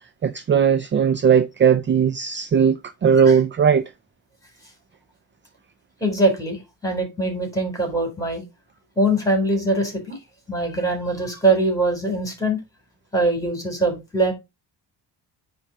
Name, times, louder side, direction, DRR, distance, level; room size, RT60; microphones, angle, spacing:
voice 1, 0.2-3.8, right 7 dB, 30° right, 0.3 m, -18 dB
voice 2, 6.0-8.4 9.0-10.2 10.5-12.6 13.1-14.3, right 2 dB, 5° left, 3.8 m, -22 dB
9.7 x 3.7 x 3.0 m
cardioid pair, 125°, 45 cm